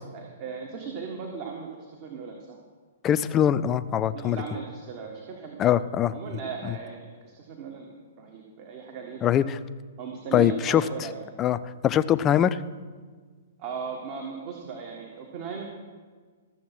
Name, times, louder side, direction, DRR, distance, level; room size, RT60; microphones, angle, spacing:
voice 1, 0.1-2.6 4.1-5.8 6.1-9.4 10.0-11.2 13.6-15.6, right 5 dB, 40° right, 1 dB, 1.6 m, -37 dB
voice 2, 3.0-4.4 5.6-6.1 6.6-6.8 9.2-9.6 10.3-10.8 11.4-11.6 11.8-12.6, left 10 dB, 25° left, 14 dB, 0.5 m, -22 dB
13.5 x 7.2 x 6.0 m, 1.5 s
figure-of-eight pair, 115°, 0 cm